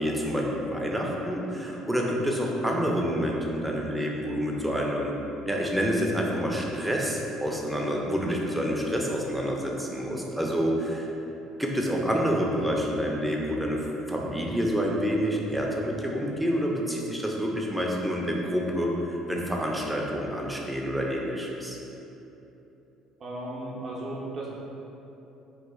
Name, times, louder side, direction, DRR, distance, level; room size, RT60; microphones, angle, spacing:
voice 1, 0.0-5.1 5.5-11.1 11.6-21.8, equal, 5° right, -2 dB, 0.6 m, -28 dB
voice 2, 23.2-24.5, right 1 dB, 45° right, -5 dB, 0.7 m, -35 dB
3.0 x 2.4 x 3.6 m, 3.0 s
hypercardioid pair, 60°, 0 cm